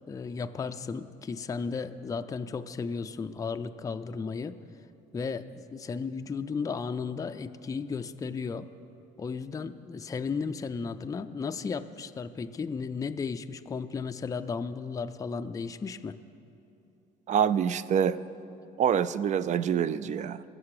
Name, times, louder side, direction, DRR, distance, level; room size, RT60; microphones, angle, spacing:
voice 1, 0.1-4.6 5.1-8.7 9.2-16.2, left 5 dB, 20° left, 8 dB, 0.4 m, -34 dB
voice 2, 17.3-18.2 18.8-20.4, right 8 dB, 45° right, 16 dB, 0.4 m, -26 dB
21.0 x 7.5 x 4.8 m, 2.7 s
cardioid pair, 110°, 17 cm